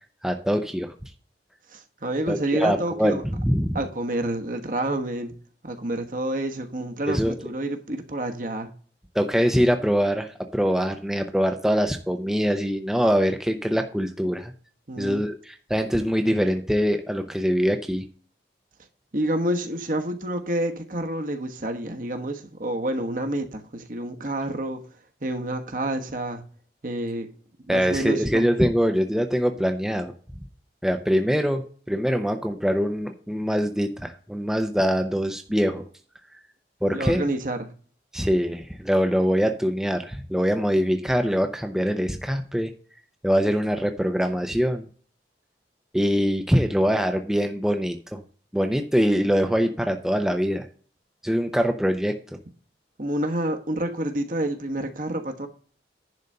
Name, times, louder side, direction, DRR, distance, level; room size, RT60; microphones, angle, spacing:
voice 1, 0.2-0.9 2.3-3.8 7.1-7.3 9.1-14.5 15.0-18.1 27.7-30.1 30.8-35.8 36.8-37.3 38.1-42.7 43.2-44.9 45.9-48.2 48.5-50.7 51.2-52.2, equal, 5° right, 0.6 m, -23 dB
voice 2, 1.7-3.2 3.7-5.3 5.6-8.7 14.9-15.2 19.1-24.8 25.2-26.4 26.8-27.3 27.7-28.5 36.9-37.7 53.0-55.5, right 1 dB, 50° right, 1.2 m, -28 dB
10.5 x 4.0 x 6.5 m
head